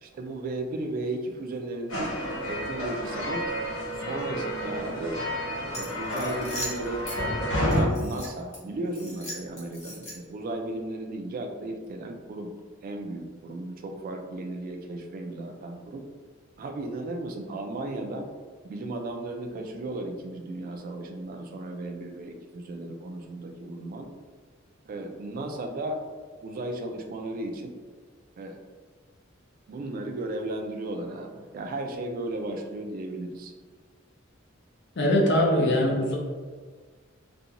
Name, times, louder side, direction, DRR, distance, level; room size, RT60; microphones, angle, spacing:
voice 1, 0.0-3.5 3.9-5.2 5.8-12.5 12.8-16.0 16.6-18.3 18.7-24.1 24.9-26.0 26.4-27.7 28.4-28.6 29.7-33.5, right 2 dB, 45° right, 4 dB, 0.3 m, -35 dB
sound 1, 1.9-7.8, equal, 80° left, 0.9 m, -30 dB
sound 2, 5.7-7.2 7.7-8.6 8.9-10.4, equal, 35° left, 0.9 m, -39 dB
voice 2, 35.0-36.2, left 1 dB, 60° left, -1 dB, 0.6 m, -22 dB
2.5 x 2.3 x 2.8 m, 1.5 s
head